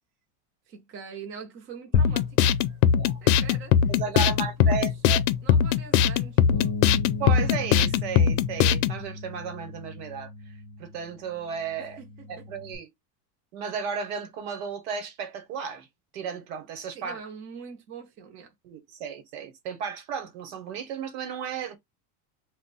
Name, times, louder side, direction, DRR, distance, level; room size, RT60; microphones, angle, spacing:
voice 1, 0.7-2.8 3.2-6.8 11.8-12.5 16.9-18.5, right 6 dB, 25° right, 0.7 m, -44 dB
sound 1, 1.9-9.0, left 8 dB, 80° left, 0.6 m, -21 dB
voice 2, 3.8-5.2 7.2-10.3 10.8-12.0 12.3-12.9 13.5-15.9 16.1-17.2 18.6-21.8, right 6 dB, 70° right, 1.1 m, -34 dB
Bass guitar, 6.5-12.8, left 3 dB, 30° left, 0.3 m, -37 dB
2.5 x 2.2 x 4.0 m
cardioid pair, 165°, 47 cm